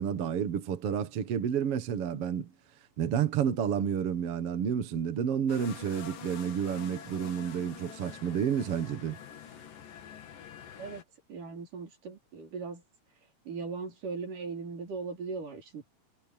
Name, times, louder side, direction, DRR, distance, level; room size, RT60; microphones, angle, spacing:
voice 1, 0.0-2.5 3.0-9.2, right 8 dB, 50° right, 2.2 m, -30 dB
sound 1, 5.5-11.0, left 8 dB, 90° left, 3.8 m, -46 dB
voice 2, 11.3-12.8 13.5-15.9, right 4 dB, 75° right, 6.2 m, -39 dB
omnidirectional pair, 3.8 m